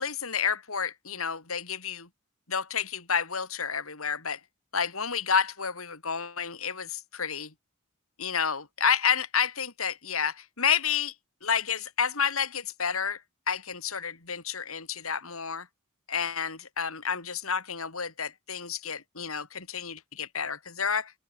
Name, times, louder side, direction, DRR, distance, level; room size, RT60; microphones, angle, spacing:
voice 1, 0.0-2.1 2.5-4.4 4.7-7.5 8.2-11.1 11.4-13.2 13.5-15.7 16.1-21.1, left 7 dB, 70° left, 4.0 m, -30 dB
open air
head